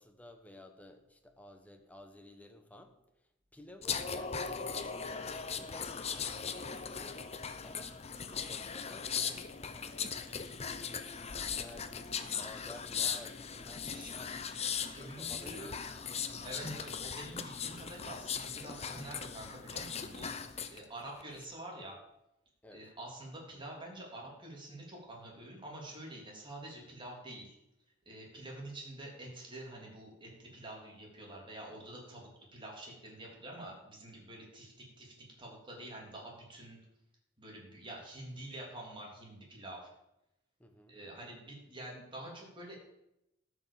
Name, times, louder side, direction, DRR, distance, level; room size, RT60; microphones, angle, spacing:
voice 1, 0.0-3.0 3.5-7.3 7.6-8.0 8.3-16.4 22.6-22.9 40.6-41.0, left 1 dB, 10° left, 5 dB, 1.1 m, -54 dB
sound 1, 3.8-20.8 21.2-21.4, left 6 dB, 30° left, 0.7 m, -39 dB
voice 2, 13.8-14.1 14.9-15.7 16.4-20.3 20.7-22.0 22.7-27.5 28.1-36.8 37.4-39.9 40.9-42.8, right 1 dB, 25° right, -1 dB, 3.4 m, -47 dB
13.5 x 6.3 x 7.0 m, 0.87 s
head